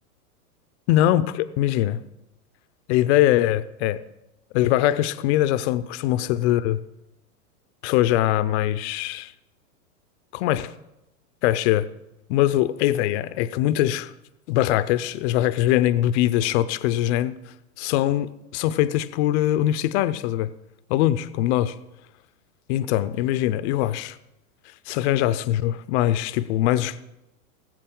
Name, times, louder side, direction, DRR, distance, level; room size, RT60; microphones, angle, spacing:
voice 1, 0.9-2.0 2.9-4.0 4.5-6.8 7.8-9.3 10.3-10.7 11.4-11.9 12.3-14.1 14.5-17.4 17.8-20.5 20.9-21.7 22.7-24.2 24.9-27.0, left 13 dB, 45° left, 0.7 m, -22 dB
19.0 x 7.8 x 3.9 m
hypercardioid pair, 125°, 45 cm